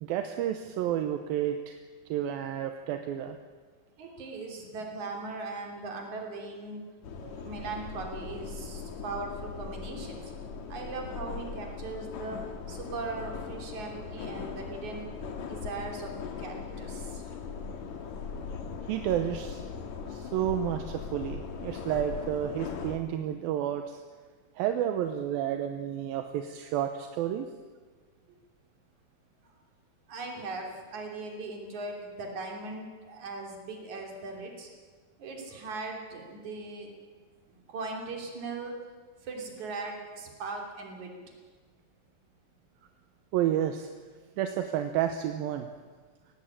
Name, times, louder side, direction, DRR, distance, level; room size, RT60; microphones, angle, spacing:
voice 1, 0.0-1.8 2.1-3.4 7.2-7.5 18.9-19.6 20.1-24.0 24.6-27.5 43.3-43.9 44.4-45.7, right 10 dB, 80° right, 7 dB, 2.7 m, -31 dB
voice 2, 4.0-6.8 7.4-10.2 10.7-12.4 12.7-15.1 15.4-16.1 16.4-17.3 30.1-34.7 35.2-36.9 37.7-38.8 39.2-41.1, right 3 dB, 55° right, 1 dB, 4.4 m, -39 dB
sound 1, 7.0-23.0, left 5 dB, 60° left, 2.6 m, -39 dB
18.0 x 17.0 x 8.7 m, 1.5 s
omnidirectional pair, 4.2 m